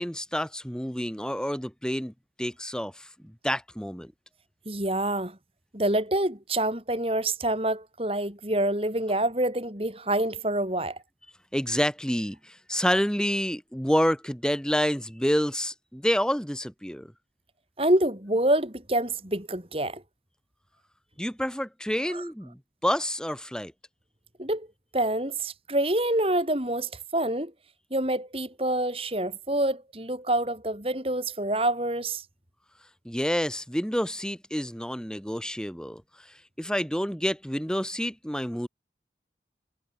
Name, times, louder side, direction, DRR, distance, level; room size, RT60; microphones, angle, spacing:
voice 1, 0.0-2.1 2.4-4.1 11.5-17.1 21.2-23.7 33.1-36.0 36.6-38.7, equal, 5° left, 5.4 m, -28 dB
voice 2, 4.7-5.4 5.7-11.0 17.8-20.0 22.1-22.2 24.4-24.7 24.9-27.5 27.9-32.2, right 1 dB, 30° right, 4.2 m, -27 dB
head